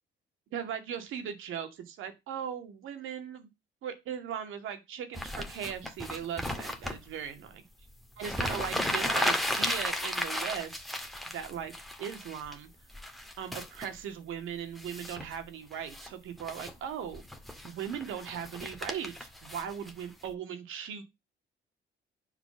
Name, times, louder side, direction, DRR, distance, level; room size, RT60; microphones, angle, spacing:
voice 1, 0.5-3.5 3.8-7.6 8.2-11.7 12.0-12.7 13.4-17.2 17.6-21.0, right 8 dB, 85° right, 8 dB, 2.2 m, -38 dB
sound 1, 5.1-7.0 7.9-8.0 8.2-12.5 12.9-13.9 14.7-15.3 15.7-16.1 16.4-16.7 17.1-20.3, left 1 dB, ahead, 1.9 m, -34 dB
10.5 x 5.0 x 6.8 m, 0.23 s
cardioid pair, 90°, 20 cm